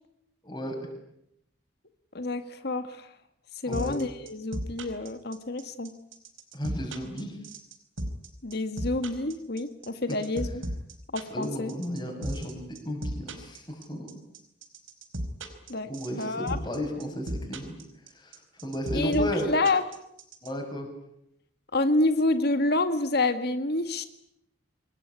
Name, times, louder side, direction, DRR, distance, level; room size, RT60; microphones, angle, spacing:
voice 1, 0.4-0.8 3.6-4.0 6.5-7.4 11.3-14.1 15.9-17.7 18.1-19.5 20.4-20.9, equal, 20° left, 1 dB, 7.1 m, -34 dB
voice 2, 2.1-3.1 3.6-5.9 8.4-10.6 11.1-11.7 15.7-15.9 16.2-16.6 18.9-19.8 21.7-24.0, left 2 dB, 55° left, 10 dB, 1.9 m, -28 dB
sound 1, 3.7-20.5, right 1 dB, 80° right, 4.8 m, -34 dB
27.0 x 22.0 x 9.8 m, 0.77 s
head